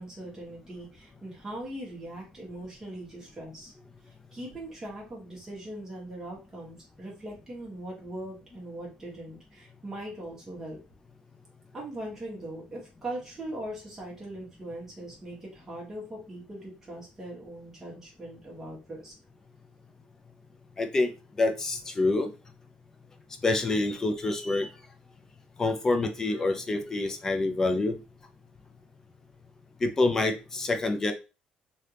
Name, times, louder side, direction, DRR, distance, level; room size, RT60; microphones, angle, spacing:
voice 1, 0.0-3.7 4.3-10.8 11.7-19.1, right 1 dB, 15° right, -5 dB, 1.4 m, -40 dB
voice 2, 20.8-21.1 21.4-22.3 23.4-24.7 25.6-28.0 29.8-31.1, left 2 dB, 15° left, 6 dB, 0.4 m, -26 dB
3.3 x 2.7 x 2.9 m, 0.30 s
cardioid pair, 180°, 3 cm